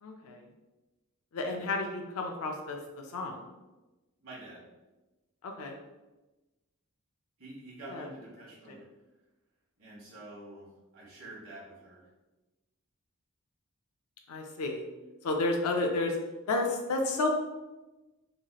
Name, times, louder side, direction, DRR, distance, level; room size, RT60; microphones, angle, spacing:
voice 1, 0.0-0.4 1.3-3.4 5.4-5.8 7.8-8.1 8.7-8.8 14.3-14.9 15.2-16.2 16.5-17.3, left 2 dB, 80° left, 2 dB, 0.4 m, -31 dB
voice 2, 4.2-4.6 7.4-8.8 9.8-12.1, right 1 dB, 70° right, -7 dB, 1.3 m, -48 dB
3.1 x 2.8 x 2.3 m, 1.1 s
head